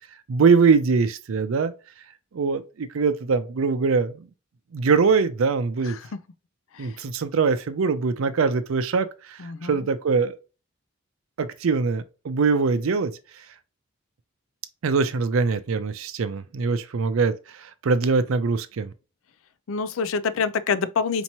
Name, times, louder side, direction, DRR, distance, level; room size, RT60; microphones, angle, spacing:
voice 1, 0.3-1.7 2.3-4.3 4.7-6.0 6.8-10.3 11.4-13.5 14.8-18.9, right 5 dB, 80° right, 0.4 m, -23 dB
voice 2, 9.4-9.9 19.7-21.2, left 5 dB, 80° left, 0.4 m, -26 dB
4.4 x 3.0 x 2.7 m
head